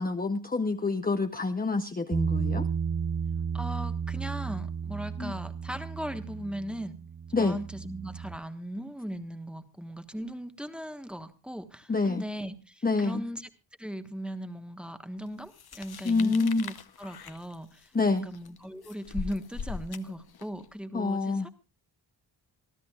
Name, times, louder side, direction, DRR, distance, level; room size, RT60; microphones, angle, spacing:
voice 1, 0.0-2.7 5.2-5.3 7.3-7.6 11.9-12.2 12.8-13.2 16.0-16.6 17.9-18.3 20.9-21.4, left 3 dB, 20° left, 6 dB, 0.7 m, -27 dB
Bass guitar, 2.1-8.4, right 7 dB, 45° right, 0.7 m, -33 dB
voice 2, 3.5-7.0 7.4-13.5 13.8-17.9 18.2-21.5, equal, ahead, 8 dB, 1.3 m, -38 dB
sound 1, 15.5-20.7, left 5 dB, 55° left, 1.0 m, -41 dB
27.0 x 13.0 x 2.4 m, 0.30 s
wide cardioid pair, 105°, 45 cm